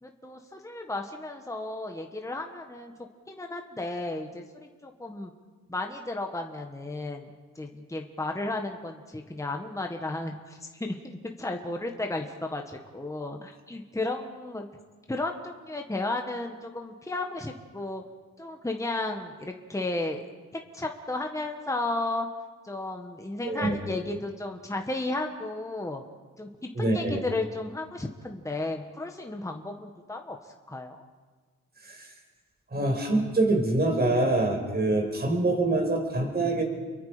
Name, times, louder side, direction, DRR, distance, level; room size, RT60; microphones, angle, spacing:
voice 1, 0.0-2.9 3.3-5.3 5.7-7.3 7.5-14.7 15.1-18.0 18.4-20.2 20.5-22.3 22.6-26.0 26.4-26.5 26.8-30.4 30.7-31.0, left 2 dB, 10° left, 3 dB, 1.6 m, -34 dB
voice 2, 26.7-27.2 31.9-32.1 32.7-36.6, right 2 dB, 30° right, 2 dB, 5.7 m, -25 dB
30.0 x 23.0 x 5.2 m, 1.4 s
cardioid pair, 90°, 31 cm